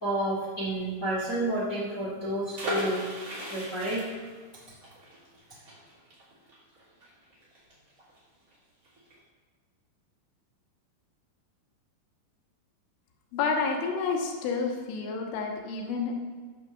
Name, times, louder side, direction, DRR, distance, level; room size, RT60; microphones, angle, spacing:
voice 1, 0.0-3.0 3.5-4.0, right 1 dB, 45° left, -6 dB, 1.0 m, -30 dB
sound 1, 2.5-8.2 8.5-8.6 8.8-9.1, right 1 dB, 25° right, 2.6 m, -37 dB
voice 2, 13.3-16.1, left 4 dB, 80° left, 1 dB, 3.7 m, -29 dB
9.1 x 6.6 x 6.8 m, 1.5 s
omnidirectional pair, 5.6 m